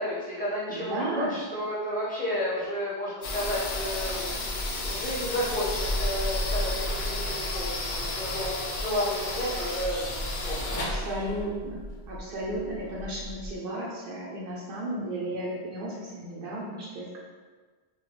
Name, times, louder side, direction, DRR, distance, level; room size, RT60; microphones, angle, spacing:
voice 1, 0.0-10.8 11.2-11.3 12.8-13.1, equal, 10° left, -10 dB, 0.7 m, -32 dB
voice 2, 0.7-1.3 10.7-17.2, right 1 dB, 70° right, -4 dB, 0.7 m, -34 dB
sound 1, 3.2-13.6, left 1 dB, 80° left, 0.8 m, -32 dB
2.2 x 2.2 x 2.9 m, 1.4 s
omnidirectional pair, 1.0 m